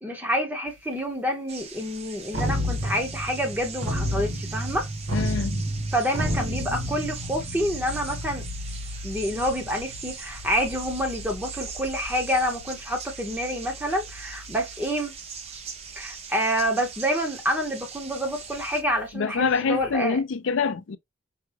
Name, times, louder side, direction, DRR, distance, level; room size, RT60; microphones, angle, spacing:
voice 1, 0.0-4.9 5.9-8.4 9.0-15.1 16.0-20.2, equal, 10° right, 0.9 m, -28 dB
sound 1, 0.7-0.8 2.3-16.1 16.6-16.9 18.3-19.9, equal, 55° right, 1.1 m, -33 dB
sound 2, 1.5-18.8, right 6 dB, 30° right, 0.5 m, -41 dB
voice 2, 5.1-5.6 19.1-21.0, left 5 dB, 70° left, 0.5 m, -25 dB
4.9 x 2.2 x 2.9 m
head